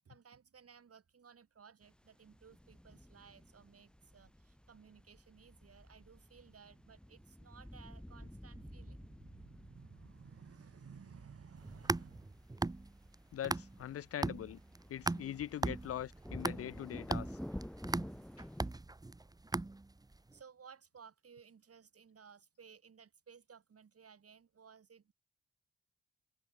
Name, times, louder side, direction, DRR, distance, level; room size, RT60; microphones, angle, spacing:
voice 1, 0.0-12.4 20.3-25.1, right 6 dB, 55° right, 6.7 m, -58 dB
sound 1, 1.8-18.7, equal, 5° left, 2.9 m, -52 dB
sound 2, 11.6-13.9 14.2-20.2, right 2 dB, 15° right, 0.9 m, -38 dB
voice 2, 13.3-14.6 14.9-17.4 18.4-18.5, left 11 dB, 55° left, 0.5 m, -42 dB
supercardioid pair, 50°, 29 cm